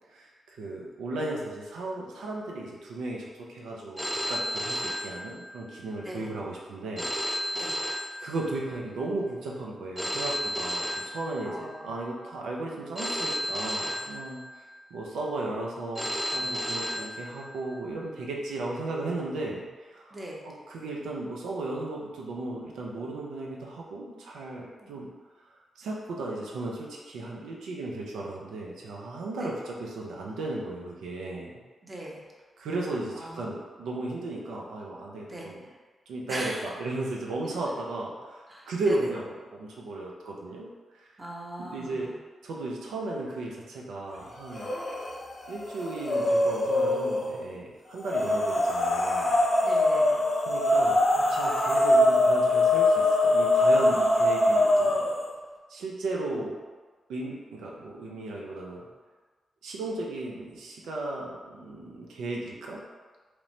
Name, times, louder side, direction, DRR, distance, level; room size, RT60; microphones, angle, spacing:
voice 1, 0.1-7.1 8.2-14.7 14.9-20.2 20.5-25.1 25.5-31.5 32.6-35.6 36.1-40.7 40.9-41.1 41.6-42.1 42.4-44.7 45.5-49.4 50.5-55.0 55.7-56.6 57.1-58.9 59.6-62.8, right 2 dB, 85° right, -2 dB, 0.4 m, -35 dB
Telephone, 4.0-5.8 7.0-8.8 10.0-11.8 13.0-14.8 16.0-17.8, equal, 5° right, 0.3 m, -33 dB
voice 2, 11.5-11.9 20.1-20.4 24.8-24.9 29.4-29.5 31.8-32.2 33.1-33.5 35.3-35.5 36.3-36.7 38.5-39.0 41.2-42.1 48.2-48.3 49.6-50.2 56.3-56.4, right 1 dB, 35° right, -3 dB, 0.7 m, -40 dB
sound 1, 44.5-45.1 45.5-47.3 48.0-55.2, left 1 dB, 55° left, 0.5 m, -23 dB
2.9 x 2.0 x 2.6 m, 1.4 s
supercardioid pair, 40°, 0 cm